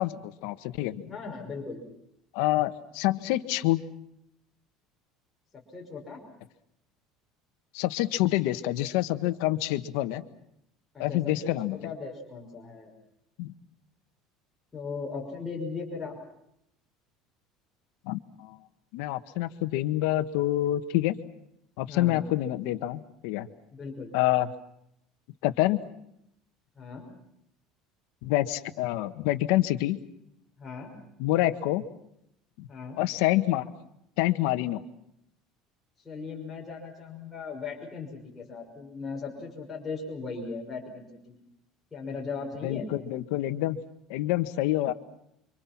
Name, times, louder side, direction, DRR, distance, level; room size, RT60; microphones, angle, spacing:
voice 1, 0.0-1.0 2.3-3.8 7.7-10.2 11.0-11.8 13.4-13.5 18.1-18.6 18.9-21.2 21.8-23.5 24.1-24.5 25.4-25.8 28.2-30.0 31.2-31.8 32.6-32.7 33.0-33.7 34.2-34.8 42.6-43.8 44.1-44.9, left 15 dB, 80° left, 10 dB, 1.6 m, -27 dB
voice 2, 1.0-1.8 5.5-6.2 10.9-12.9 14.7-16.2 21.9-22.3 23.7-24.1 26.8-27.1 30.6-30.9 32.7-33.0 36.0-41.4 41.9-42.9, left 4 dB, 15° left, -3 dB, 5.7 m, -38 dB
29.5 x 25.5 x 6.1 m, 0.77 s
cardioid pair, 145°, 0 cm